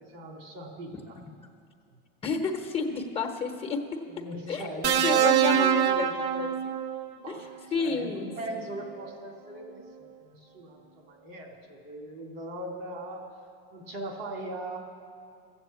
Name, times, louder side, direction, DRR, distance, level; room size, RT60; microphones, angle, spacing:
voice 1, 0.1-1.2 4.1-6.5 7.2-13.3 13.7-14.8, right 1 dB, 80° right, 2 dB, 2.7 m, -39 dB
voice 2, 2.2-3.8 4.5-4.7 5.0-5.8 6.2-6.5 7.7-8.3, left 4 dB, 20° left, 4 dB, 0.9 m, -30 dB
sound 1, 4.8-7.1 8.4-8.6, right 9 dB, 40° right, 0.6 m, -24 dB
14.0 x 7.9 x 8.2 m, 2.4 s
supercardioid pair, 160°, 29 cm